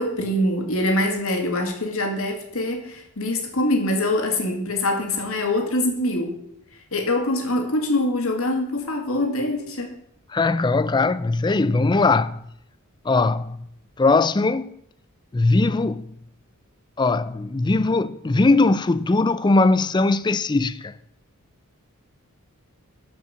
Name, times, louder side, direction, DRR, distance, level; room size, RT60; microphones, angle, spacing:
voice 1, 0.0-6.4 6.9-9.9, left 1 dB, 70° left, 2.1 m, -24 dB
voice 2, 10.3-12.5 13.1-13.7 14.0-14.7 15.3-16.1 17.0-21.0, left 3 dB, 20° left, 0.4 m, -20 dB
12.5 x 5.5 x 6.9 m
head